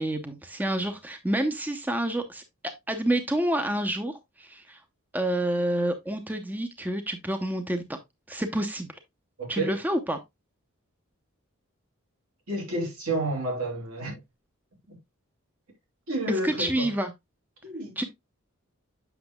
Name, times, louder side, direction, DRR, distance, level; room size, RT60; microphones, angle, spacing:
voice 1, 0.0-2.4 2.9-4.8 5.1-7.8 8.3-9.0 9.5-10.2 16.4-17.1 18.0-18.1, right 1 dB, 10° right, 0.6 m, -28 dB
voice 2, 9.4-9.8 12.5-14.2 14.9-15.0 16.1-16.9 17.6-18.1, right 2 dB, 85° right, 3.1 m, -30 dB
8.0 x 6.1 x 2.2 m
head